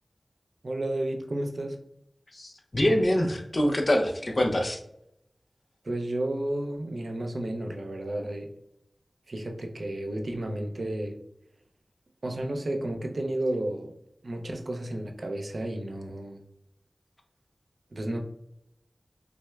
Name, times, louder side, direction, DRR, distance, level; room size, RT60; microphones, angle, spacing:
voice 1, 0.6-1.8 5.8-8.5 9.3-11.2 12.2-13.9 14.2-16.4 17.9-18.2, right 1 dB, 70° right, 3 dB, 0.5 m, -32 dB
voice 2, 2.3-4.8, left 1 dB, 45° left, 3 dB, 0.6 m, -25 dB
6.0 x 2.1 x 2.3 m, 0.77 s
wide cardioid pair, 50°, 0 cm